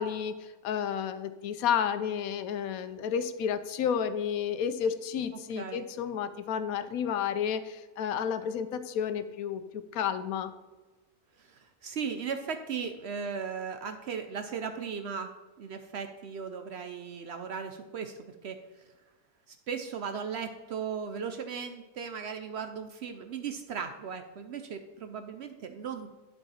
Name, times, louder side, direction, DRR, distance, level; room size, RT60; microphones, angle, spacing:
voice 1, 0.0-10.5, left 8 dB, 80° left, 11 dB, 1.1 m, -31 dB
voice 2, 11.4-15.3 15.6-18.6 19.5-26.1, right 6 dB, 65° right, 7 dB, 0.7 m, -37 dB
11.0 x 4.7 x 4.2 m, 1.2 s
omnidirectional pair, 1.5 m